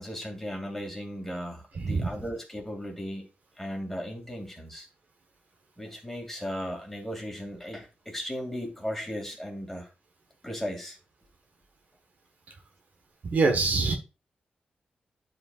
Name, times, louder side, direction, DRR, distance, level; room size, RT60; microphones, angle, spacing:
voice 1, 0.0-3.3 3.6-4.9 5.8-9.9 10.4-11.0, equal, 10° left, 2 dB, 2.4 m, -36 dB
voice 2, 1.8-2.1 13.2-13.9, right 3 dB, 60° right, 4 dB, 1.3 m, -24 dB
11.5 x 5.0 x 2.4 m, 0.31 s
wide cardioid pair, 125°, 3 cm